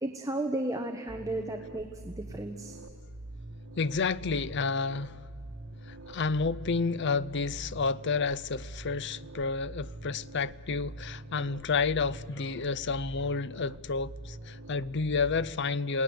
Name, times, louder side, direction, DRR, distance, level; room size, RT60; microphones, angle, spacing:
voice 1, 0.0-2.8, right 1 dB, 15° right, 1.2 m, -34 dB
sound 1, 1.1-15.5, right 1 dB, 80° right, 1.5 m, -45 dB
voice 2, 3.8-5.2 5.9-16.0, left 4 dB, 55° left, 0.6 m, -30 dB
28.5 x 18.5 x 8.0 m
head